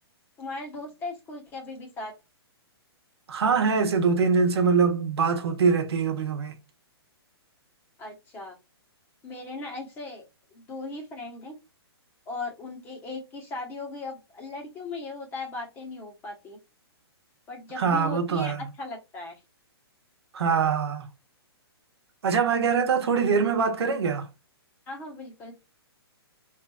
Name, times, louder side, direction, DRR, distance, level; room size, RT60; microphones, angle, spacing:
voice 1, 0.4-2.1 8.0-8.6 9.2-10.3 10.5-11.6 12.3-16.6 17.5-19.4 24.9-25.6, left 3 dB, 15° left, 0.9 m, -38 dB
voice 2, 3.3-6.5 17.8-18.6 20.3-21.1 22.2-24.3, right 5 dB, 75° right, 1.0 m, -23 dB
3.5 x 3.2 x 2.2 m
hypercardioid pair, 165°, 14 cm